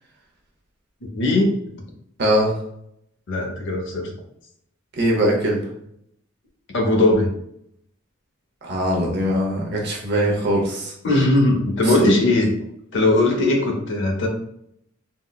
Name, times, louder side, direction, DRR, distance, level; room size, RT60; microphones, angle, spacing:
voice 1, 1.1-1.5 3.3-4.1 6.7-7.3 11.0-12.5 12.9-14.3, left 2 dB, 60° left, 2 dB, 0.6 m, -19 dB
voice 2, 2.2-2.5 5.0-5.7 8.6-10.9 11.8-12.1, equal, 55° right, -1 dB, 0.7 m, -21 dB
3.7 x 2.1 x 2.2 m, 0.72 s
head